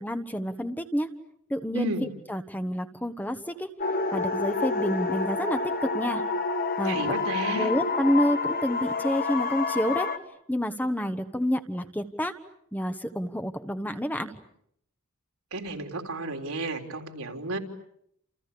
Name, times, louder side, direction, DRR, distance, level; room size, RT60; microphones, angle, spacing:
voice 1, 0.0-1.1 1.5-1.9 2.3-3.7 4.1-6.2 6.8-7.1 7.5-10.1 10.5-12.3 12.7-14.3, equal, 10° left, 8 dB, 1.3 m, -28 dB
sound 1, 3.8-10.2, left 4 dB, 40° left, 1.6 m, -28 dB
voice 2, 6.8-7.7 15.5-17.6, right 2 dB, 80° right, 3 dB, 3.7 m, -32 dB
29.5 x 29.0 x 6.9 m, 0.73 s
head